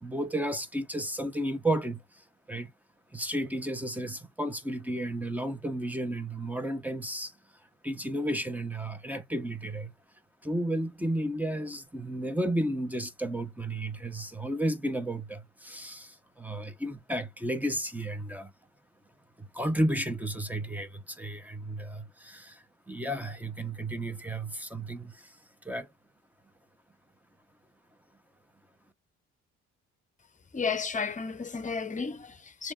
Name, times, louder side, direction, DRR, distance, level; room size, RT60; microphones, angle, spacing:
voice 1, 0.0-2.7 3.1-7.3 7.8-9.9 10.4-18.5 19.4-25.4 25.6-25.9, right 1 dB, 5° right, 0.8 m, -33 dB
voice 2, 30.5-32.7, left 5 dB, 25° left, 0.9 m, -33 dB
6.8 x 3.0 x 2.4 m
cardioid pair, 90°, 30 cm